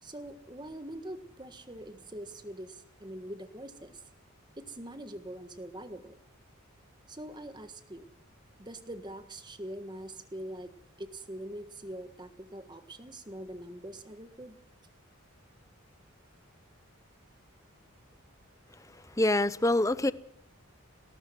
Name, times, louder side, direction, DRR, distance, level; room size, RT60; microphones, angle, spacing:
voice 1, 0.0-4.0 4.6-6.2 7.1-8.1 8.6-10.7 11.0-14.5, right 1 dB, 20° right, 1.5 m, -43 dB
voice 2, 19.2-20.1, left 1 dB, 15° left, 0.7 m, -25 dB
19.0 x 18.0 x 7.6 m
head